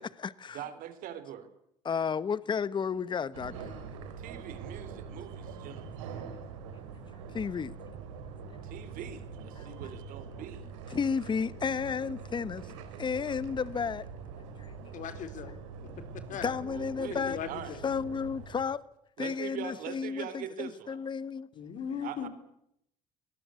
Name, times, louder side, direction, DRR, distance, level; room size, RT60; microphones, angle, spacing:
voice 1, 0.0-0.6 1.8-3.7 7.3-7.7 9.6-9.8 10.9-14.1 14.6-14.7 16.4-17.4 17.8-18.8 19.2-21.5, left 6 dB, 30° left, 1.1 m, -32 dB
voice 2, 0.5-1.5 4.2-6.0 8.6-10.6 16.6-17.8 19.2-21.0 22.0-22.3, right 10 dB, 65° right, 3.7 m, -42 dB
sound 1, 3.3-18.6, right 5 dB, 90° right, 3.4 m, -44 dB
voice 3, 14.9-15.6 16.3-16.5 17.3-17.8 21.5-22.3, left 8 dB, 55° left, 4.2 m, -38 dB
25.0 x 18.5 x 8.3 m
supercardioid pair, 80°, 15 cm